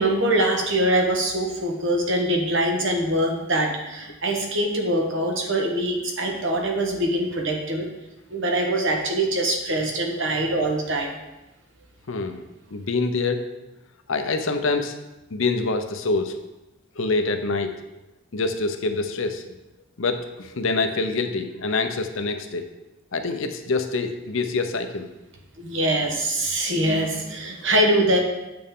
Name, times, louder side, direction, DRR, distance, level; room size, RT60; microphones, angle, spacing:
voice 1, 0.0-7.9 8.3-11.1 25.6-28.2, right 1 dB, 55° right, 1 dB, 1.3 m, -23 dB
voice 2, 12.1-12.4 12.7-13.5 14.1-15.0 15.3-16.4 16.9-18.0 18.3-19.4 20.0-22.7 23.1-25.1, left 3 dB, 65° left, 7 dB, 0.7 m, -25 dB
8.7 x 6.7 x 3.7 m, 1.0 s
head